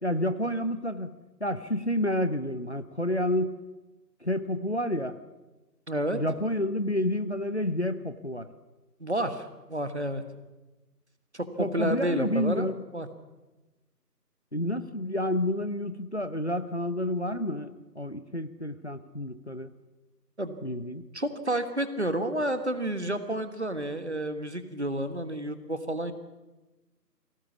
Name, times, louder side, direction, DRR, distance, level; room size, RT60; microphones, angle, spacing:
voice 1, 0.0-3.5 4.2-5.2 6.1-8.5 11.6-12.8 14.5-19.7 20.6-21.0, left 1 dB, 45° left, 12 dB, 0.8 m, -29 dB
voice 2, 5.9-6.2 9.0-10.2 11.3-12.7 12.9-13.1 20.4-20.6 21.1-26.1, right 1 dB, 45° right, 10 dB, 1.5 m, -30 dB
22.0 x 17.5 x 7.2 m, 1.1 s
figure-of-eight pair, 175°, 49 cm